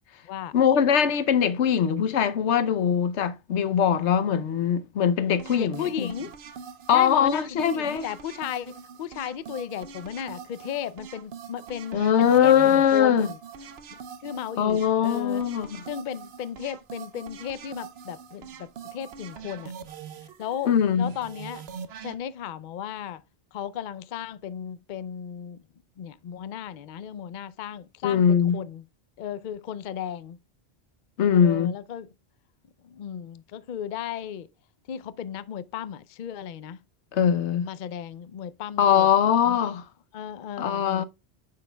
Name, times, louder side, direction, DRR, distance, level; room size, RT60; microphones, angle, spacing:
voice 1, 0.5-6.1 6.9-8.0 11.9-13.3 14.6-15.8 20.7-21.1 28.0-28.6 31.2-31.7 37.1-37.7 38.8-39.8 40.6-41.0, left 8 dB, 90° left, 1.0 m, -21 dB
sound 1, 5.4-22.1, right 7 dB, 70° right, 1.0 m, -43 dB
voice 2, 5.6-6.3 6.9-13.4 13.9-15.4 15.9-19.7 20.4-21.7 22.0-23.2 23.5-25.6 26.0-28.8 29.2-30.4 31.3-32.1 32.8-34.5 34.9-36.8 37.6-39.1 39.5-39.6 40.1-41.0, left 9 dB, 55° left, 0.6 m, -35 dB
9.6 x 6.6 x 2.2 m
omnidirectional pair, 1.1 m